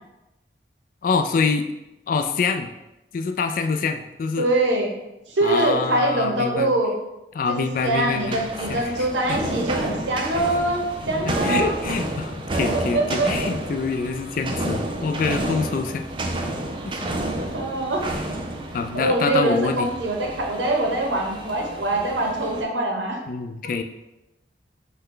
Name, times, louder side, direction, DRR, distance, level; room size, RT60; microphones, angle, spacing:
voice 1, 1.0-1.7 2.1-2.7 3.1-4.5 5.4-6.7 7.3-8.4 8.7-9.4 11.2-16.0 16.8-17.1 18.7-19.9 23.3-23.8, left 4 dB, 50° left, 7 dB, 0.3 m, -26 dB
voice 2, 4.4-5.0 5.3-6.9 7.5-11.7 12.9-13.3 17.5-18.1 18.9-23.2, right 2 dB, 85° right, 1 dB, 0.8 m, -23 dB
sound 1, 7.7-22.6, right 1 dB, 30° right, 0.4 m, -30 dB
5.5 x 2.2 x 3.7 m, 0.97 s
head